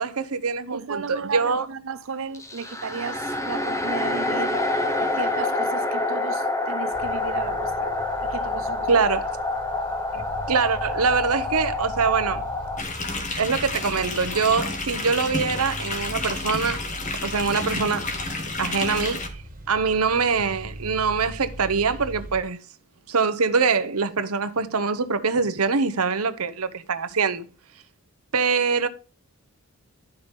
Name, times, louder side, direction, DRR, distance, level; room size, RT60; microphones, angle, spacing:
voice 1, 0.0-1.6 8.9-9.3 10.1-12.4 13.4-16.8 17.2-18.1 18.6-19.3 19.7-22.6 23.1-27.5 28.3-28.9, right 5 dB, 80° right, 1.0 m, -24 dB
voice 2, 0.7-4.6 5.0-9.0, right 5 dB, 60° right, 0.6 m, -34 dB
sound 1, 2.3-12.8, left 2 dB, 15° left, 0.9 m, -27 dB
sound 2, 6.9-22.4, right 1 dB, 40° right, 1.7 m, -40 dB
sound 3, 12.8-19.3, left 3 dB, 35° left, 1.7 m, -30 dB
12.0 x 5.7 x 5.3 m
head